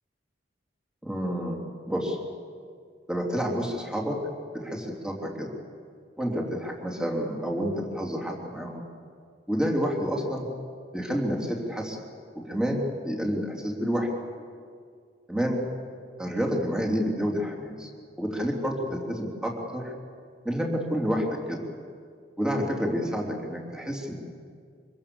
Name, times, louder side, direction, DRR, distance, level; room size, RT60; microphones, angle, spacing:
voice 1, 1.0-1.6 1.9-2.2 3.1-4.2 4.5-5.5 6.2-8.8 9.5-10.5 10.9-12.0 12.4-14.1 15.3-15.6 16.2-17.9 18.2-19.9 20.5-21.6 22.4-24.2, equal, 5° right, -1 dB, 3.5 m, -29 dB
25.5 x 24.5 x 7.2 m, 2.2 s
head